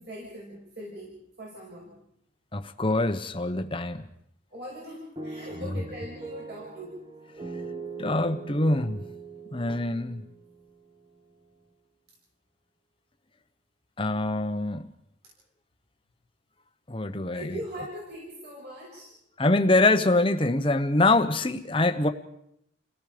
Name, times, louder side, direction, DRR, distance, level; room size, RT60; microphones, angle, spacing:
voice 1, 0.0-1.9 4.5-7.0 17.3-19.2, equal, 55° right, -4 dB, 6.9 m, -41 dB
voice 2, 2.5-4.0 8.0-9.0 9.5-10.2 14.0-14.9 16.9-17.5 19.4-22.1, left 2 dB, 25° left, 8 dB, 1.0 m, -24 dB
sound 1, 5.2-11.2, right 3 dB, 25° right, 1.4 m, -41 dB
29.5 x 18.0 x 5.1 m, 0.74 s
head